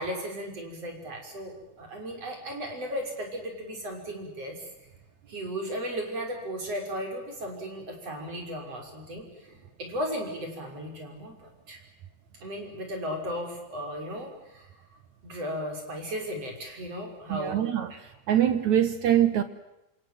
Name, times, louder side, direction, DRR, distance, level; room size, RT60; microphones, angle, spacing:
voice 1, 0.0-4.7 5.3-11.8 12.4-14.7 15.2-17.6, equal, 40° right, 2 dB, 6.9 m, -35 dB
voice 2, 17.3-17.9 18.3-19.4, right 10 dB, 65° right, 11 dB, 2.0 m, -23 dB
27.5 x 27.5 x 7.6 m, 0.92 s
omnidirectional pair, 4.6 m